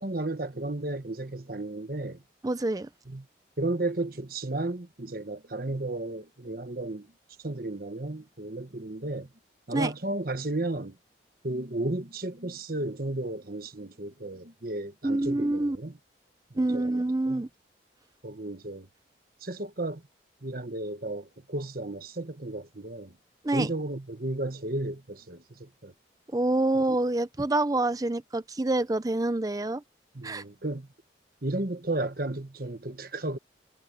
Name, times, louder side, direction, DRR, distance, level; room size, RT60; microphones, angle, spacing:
voice 1, 0.0-2.2 3.1-3.3 3.6-7.1 7.4-9.3 9.7-11.0 11.4-16.0 16.5-16.9 17.3-17.5 18.2-18.9 19.4-20.0 20.4-23.1 23.5-25.9 26.7-26.8 30.1-30.9 31.4-33.4, right 2 dB, 50° right, 1.4 m, -33 dB
voice 2, 2.4-2.9 9.7-9.9 15.0-15.8 16.6-17.5 23.4-23.7 26.3-29.8 30.2-30.4, right 2 dB, 20° right, 0.5 m, -27 dB
head